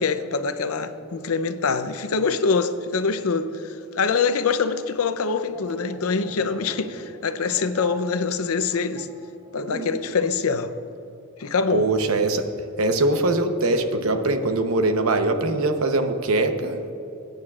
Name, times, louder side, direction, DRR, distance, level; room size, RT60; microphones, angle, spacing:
voice 1, 0.0-9.1 9.5-10.7 11.4-11.9, left 5 dB, 85° left, 10 dB, 0.6 m, -24 dB
sound 1, 5.4-10.2 10.4-10.7, right 1 dB, 40° right, 1.5 m, -40 dB
voice 2, 11.7-12.5 12.8-16.9, right 2 dB, 80° right, 6 dB, 0.9 m, -22 dB
20.5 x 9.3 x 2.4 m, 2.9 s
head